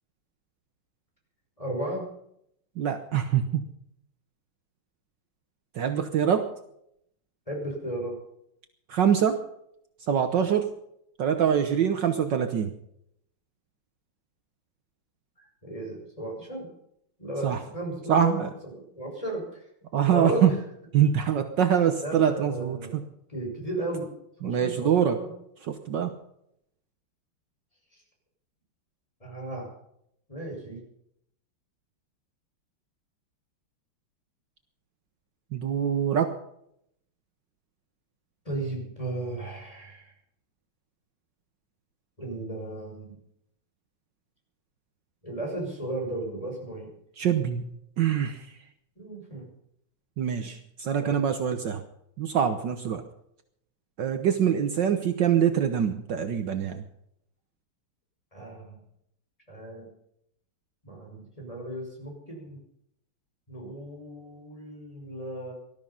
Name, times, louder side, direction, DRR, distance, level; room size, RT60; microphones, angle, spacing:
voice 1, 1.6-2.0 7.5-8.2 15.4-16.7 17.2-19.7 20.1-20.6 22.0-22.9 23.3-24.1 24.4-25.3 27.9-28.0 29.2-29.7 30.3-30.8 38.5-40.1 42.2-43.2 45.2-46.9 49.0-49.5 50.4-50.5 51.0-51.2 58.3-58.8 59.5-59.9 60.8-62.6 63.5-65.5, right 1 dB, 15° left, 0 dB, 5.8 m, -35 dB
voice 2, 2.8-3.5 5.7-6.5 8.9-9.4 10.1-10.7 11.2-12.7 17.4-17.6 18.1-18.5 19.9-20.5 20.9-23.0 24.4-25.2 25.7-26.1 35.5-36.4 47.2-48.5 50.2-51.8 52.2-53.0 54.0-56.8, right 8 dB, 65° right, 8 dB, 1.6 m, -24 dB
19.0 x 13.0 x 5.6 m, 0.74 s
omnidirectional pair, 2.3 m